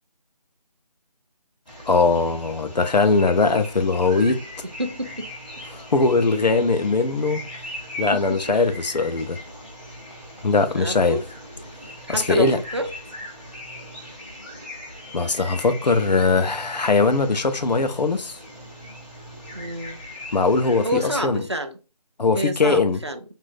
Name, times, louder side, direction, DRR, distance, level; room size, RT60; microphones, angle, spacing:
sound 1, 1.7-21.2, left 1 dB, 10° left, 0.7 m, -39 dB
voice 1, 1.9-4.4 5.7-7.4 8.0-9.4 10.4-11.2 12.1-12.6 15.1-18.4 20.3-21.4 22.2-23.0, left 3 dB, 85° left, 0.7 m, -20 dB
voice 2, 4.8-5.3 8.1-8.5 10.7-11.2 12.0-12.9 19.5-20.0 20.8-21.8 22.3-23.2, equal, 40° right, 0.4 m, -28 dB
3.6 x 2.6 x 2.5 m
figure-of-eight pair, 175°, 21 cm